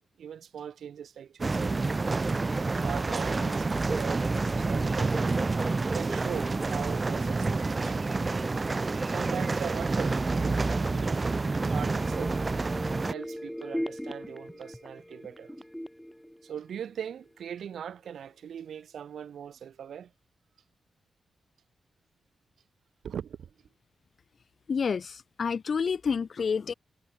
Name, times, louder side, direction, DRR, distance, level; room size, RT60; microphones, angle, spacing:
voice 1, 0.2-1.8 2.7-5.3 5.9-8.2 9.1-11.3 11.7-12.4 13.1-15.6 16.4-20.1 23.0-23.5, right 8 dB, 85° right, 1.2 m, -40 dB
sound 1, 1.4-13.1, right 3 dB, 30° right, 0.3 m, -28 dB
sound 2, 11.6-17.2 17.6-17.7, equal, ahead, 0.7 m, -39 dB
voice 2, 24.7-26.7, left 6 dB, 50° left, 0.6 m, -29 dB
wide cardioid pair, 120°, 0 cm